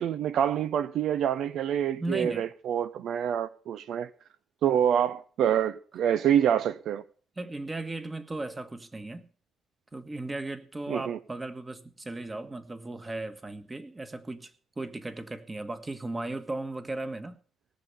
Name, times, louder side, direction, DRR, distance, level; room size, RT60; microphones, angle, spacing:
voice 1, 0.0-4.1 4.6-7.0 10.9-11.2, right 9 dB, 75° right, 0.6 m, -26 dB
voice 2, 2.0-2.5 7.4-9.2 9.9-17.4, right 2 dB, 20° right, 1.6 m, -36 dB
18.0 x 7.2 x 6.8 m
cardioid pair, 90°, 0 cm